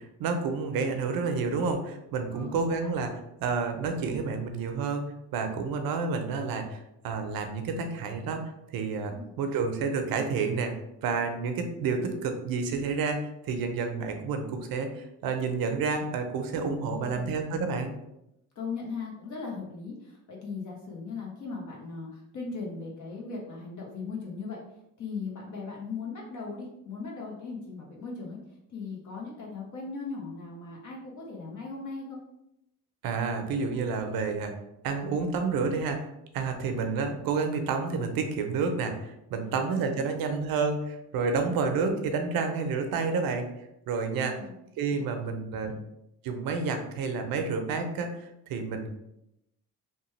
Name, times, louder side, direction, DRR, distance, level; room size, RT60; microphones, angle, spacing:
voice 1, 0.0-3.1 3.4-5.0 5.3-6.8 7.0-10.7 11.0-17.9 33.0-34.5 34.8-36.1 36.3-43.5 43.9-44.3 44.8-45.7 46.2-48.9, right 4 dB, 70° right, 6 dB, 0.6 m, -29 dB
voice 2, 16.8-17.4 18.5-24.6 25.0-28.4 28.7-32.2 36.5-36.7 39.3-39.6 40.0-40.3 44.1-45.0 45.7-45.8, left 4 dB, 55° left, -2 dB, 0.8 m, -39 dB
2.9 x 2.2 x 3.1 m, 0.84 s
supercardioid pair, 65°, 37 cm